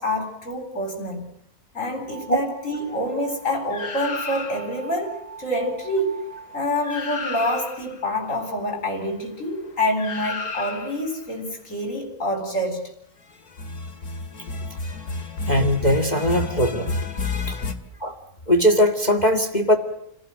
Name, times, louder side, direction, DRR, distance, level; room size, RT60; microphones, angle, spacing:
voice 1, 0.0-1.3 1.7-6.3 6.5-12.9 17.6-17.7, left 1 dB, 60° left, 4.7 m, -27 dB
sound 1, 2.1-7.0, right 5 dB, 60° right, 4.1 m, -42 dB
sound 2, 3.7-4.9 6.5-6.6 6.8-8.0 10.0-11.1 13.5-17.7, left 3 dB, 85° left, 2.9 m, -31 dB
voice 2, 15.5-16.9 17.5-17.6 18.0-18.1 18.5-19.8, equal, 30° left, 2.1 m, -20 dB
29.5 x 18.5 x 9.2 m
omnidirectional pair, 1.5 m